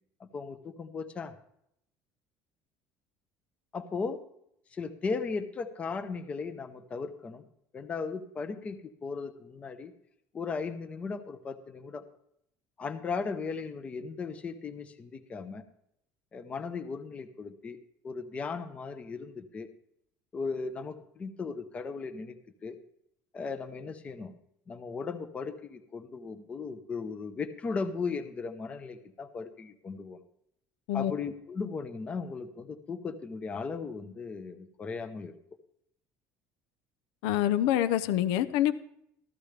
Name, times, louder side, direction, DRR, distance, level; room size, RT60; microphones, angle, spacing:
voice 1, 0.2-1.3 3.7-4.2 4.7-7.4 7.7-9.9 10.3-12.1 12.8-15.6 16.3-17.8 18.0-19.7 20.3-22.4 22.6-22.8 23.3-24.3 24.7-30.2 30.9-35.3, left 4 dB, 20° left, 8 dB, 0.8 m, -37 dB
voice 2, 37.2-38.7, left 12 dB, 85° left, 13 dB, 0.8 m, -26 dB
14.5 x 13.5 x 3.4 m, 0.74 s
cardioid pair, 175°, 6 cm